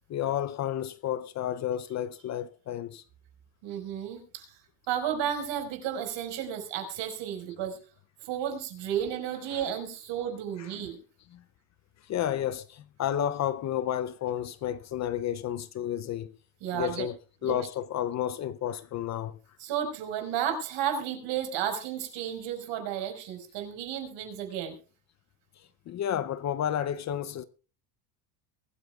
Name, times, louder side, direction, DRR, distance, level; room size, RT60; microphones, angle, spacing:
voice 1, 0.1-3.0 9.5-9.7 10.6-10.9 11.3-11.4 12.0-16.3 16.7-19.4 25.6-27.4, left 10 dB, 35° left, 0.6 m, -31 dB
voice 2, 3.6-4.6 4.9-7.8 8.2-11.0 16.6-17.1 17.4-17.6 19.6-24.7, right 9 dB, 60° right, 5.1 m, -33 dB
23.0 x 13.5 x 2.4 m
cardioid pair, 125°, 48 cm